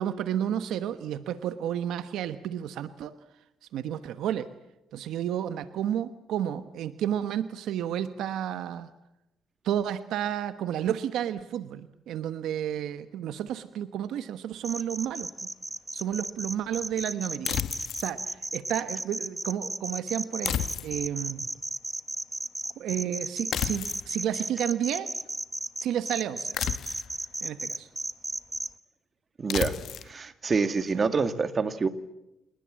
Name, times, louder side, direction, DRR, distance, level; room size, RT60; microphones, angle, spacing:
voice 1, 0.0-3.1 3.7-4.5 4.9-8.9 9.6-15.5 15.9-17.6 18.0-21.5 22.8-25.1 25.8-26.6 27.4-27.9 30.9-31.1, right 10 dB, 80° right, 11 dB, 1.1 m, -31 dB
sound 1, 14.6-28.7, right 2 dB, 15° right, 1.1 m, -34 dB
sound 2, 17.5-18.1 20.5-21.2 23.5-24.1 26.5-27.2 29.5-30.1, left 10 dB, 70° left, 1.2 m, -31 dB
voice 2, 29.4-29.7 30.1-31.9, right 4 dB, 35° right, 10 dB, 2.0 m, -26 dB
27.5 x 19.5 x 7.6 m, 0.89 s
cardioid pair, 90°, 0 cm